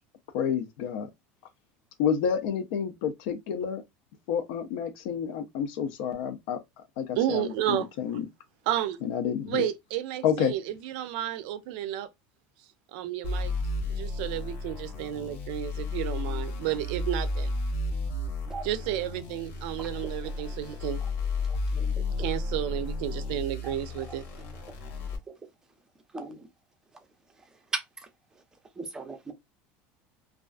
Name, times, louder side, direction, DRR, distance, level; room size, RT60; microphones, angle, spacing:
voice 1, 0.3-1.1 2.0-3.8 4.3-6.6 7.0-8.2 9.0-9.7 10.2-10.5, left 8 dB, 75° left, 0.5 m, -29 dB
voice 2, 7.2-7.9 8.7-9.0 9.5-12.1 12.9-13.5 13.9-17.5 18.6-21.0 22.2-24.3, right 12 dB, 75° right, 0.4 m, -31 dB
sound 1, 13.2-25.2, left 3 dB, 50° left, 0.9 m, -33 dB
voice 3, 21.5-21.9 23.6-23.7 26.1-26.4 27.7-27.8 28.8-29.3, right 3 dB, 10° right, 0.5 m, -36 dB
2.3 x 2.3 x 2.4 m
cardioid pair, 155°, 5 cm